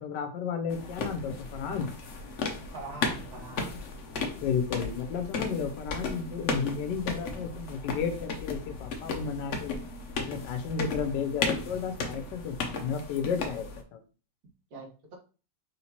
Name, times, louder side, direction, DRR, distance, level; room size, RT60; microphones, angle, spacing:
voice 1, 0.0-1.9 4.4-9.8 10.2-14.0, left 6 dB, 80° left, 7 dB, 1.3 m, -33 dB
sound 1, 0.7-13.8, left 3 dB, 60° left, 0.8 m, -35 dB
voice 2, 2.7-3.7 14.7-15.2, right 3 dB, 60° right, 0 dB, 1.6 m, -43 dB
4.3 x 3.6 x 2.8 m, 0.35 s
omnidirectional pair, 1.9 m